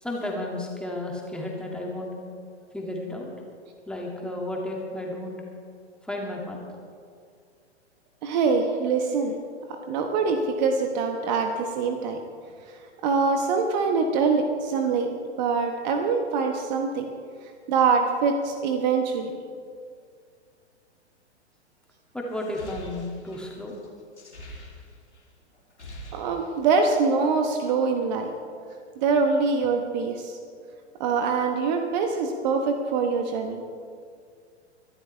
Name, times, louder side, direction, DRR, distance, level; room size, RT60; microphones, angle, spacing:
voice 1, 0.0-2.1 2.7-3.3 3.9-5.4 6.0-6.6 22.1-23.8, left 1 dB, 5° left, -1 dB, 2.2 m, -33 dB
voice 2, 8.2-9.3 9.7-12.2 13.0-15.1 15.4-17.1 17.7-19.4 26.1-28.3 29.0-30.4 31.0-33.6, right 4 dB, 40° right, 5 dB, 1.2 m, -24 dB
sound 1, 22.3-25.2 25.5-26.9, equal, 80° left, 3.0 m, -44 dB
24.0 x 11.5 x 3.3 m, 2.1 s
figure-of-eight pair, 105°, 34 cm